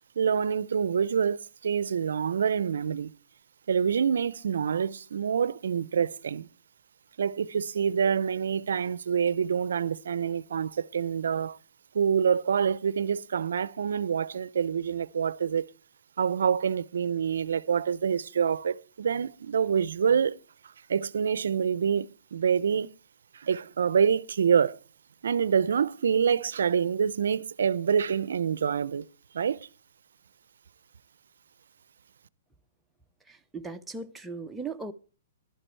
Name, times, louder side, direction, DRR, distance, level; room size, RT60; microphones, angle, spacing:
voice 1, 0.2-3.1 3.7-6.5 7.2-11.6 11.9-15.7 16.2-20.4 20.9-22.9 23.3-24.8 25.2-29.1 29.3-29.7, right 7 dB, 80° right, 0.5 m, -26 dB
voice 2, 33.3-34.9, right 4 dB, 5° right, 0.6 m, -38 dB
11.5 x 9.9 x 4.4 m
hypercardioid pair, 145°, 0 cm